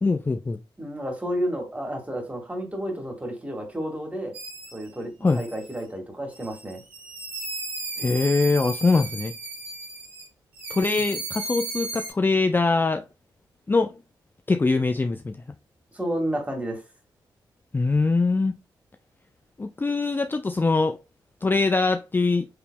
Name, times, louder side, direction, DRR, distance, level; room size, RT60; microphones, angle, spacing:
voice 1, 0.0-0.6 5.2-5.4 8.0-9.3 10.7-13.0 13.7-13.9 14.5-15.4 17.7-18.5 19.6-21.0 21.4-22.5, left 3 dB, 20° left, 0.4 m, -22 dB
voice 2, 0.8-4.3 4.7-6.8 15.9-16.8, equal, 15° right, 1.9 m, -31 dB
sound 1, 4.3-4.8 5.3-5.8 6.3-10.3 10.5-12.1, right 3 dB, 85° right, 1.9 m, -35 dB
4.8 x 3.2 x 2.3 m
supercardioid pair, 45°, 9 cm